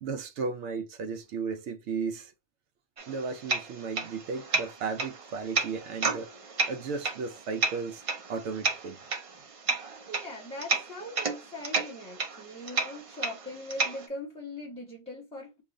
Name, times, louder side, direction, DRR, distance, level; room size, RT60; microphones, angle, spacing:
voice 1, 0.0-2.3 3.1-6.3 6.6-8.0 8.3-9.0, right 5 dB, 85° right, 0.9 m, -35 dB
sound 1, 3.0-14.1, right 3 dB, 45° right, 0.5 m, -33 dB
voice 2, 10.1-15.6, left 1 dB, 5° left, 1.1 m, -41 dB
2.8 x 2.4 x 3.8 m
omnidirectional pair, 1.1 m